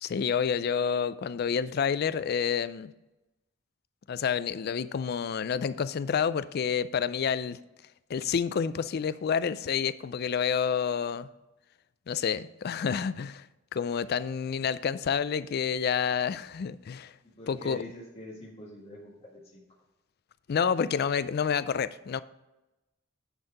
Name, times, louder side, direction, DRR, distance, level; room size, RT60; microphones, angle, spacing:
voice 1, 0.0-2.9 4.1-7.6 8.1-11.3 12.1-13.4 13.7-17.1 17.5-17.8 20.5-22.2, left 7 dB, 55° left, 0.4 m, -29 dB
voice 2, 17.2-19.6, left 1 dB, 30° left, 1.8 m, -45 dB
10.0 x 4.5 x 4.9 m
head